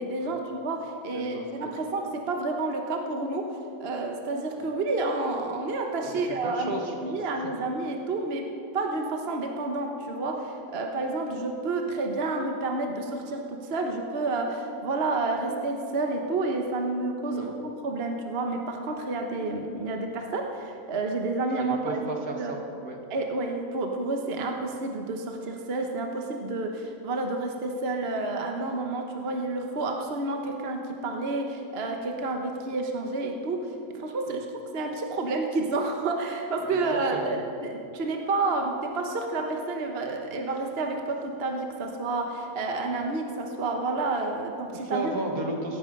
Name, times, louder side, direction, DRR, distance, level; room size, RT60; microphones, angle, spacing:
voice 1, 0.0-3.5 3.8-6.7 7.0-22.0 22.3-22.5 23.1-45.2, right 3 dB, 45° right, 3 dB, 1.3 m, -30 dB
voice 2, 1.1-1.8 4.6-4.7 6.2-7.2 17.3-17.5 21.6-23.0 36.6-37.4 44.7-45.8, right 2 dB, 75° right, 1 dB, 2.4 m, -34 dB
17.0 x 14.0 x 5.3 m, 2.6 s
omnidirectional pair, 1.5 m